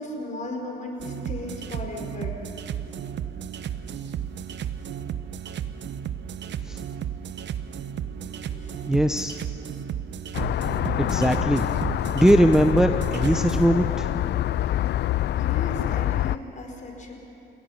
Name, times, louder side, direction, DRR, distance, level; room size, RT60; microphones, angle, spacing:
voice 1, 0.0-2.4 8.2-9.0 14.6-14.9 15.3-17.2, left 1 dB, 40° left, 1 dB, 4.6 m, -36 dB
sound 1, 1.0-13.7, right 9 dB, 65° right, 0.9 m, -34 dB
voice 2, 8.9-9.4 11.0-11.7 12.1-14.1, equal, 5° right, 6 dB, 0.8 m, -20 dB
sound 2, 10.3-16.4, left 13 dB, 60° left, 0.4 m, -26 dB
29.5 x 17.0 x 5.7 m, 2.8 s
cardioid pair, 90°, 20 cm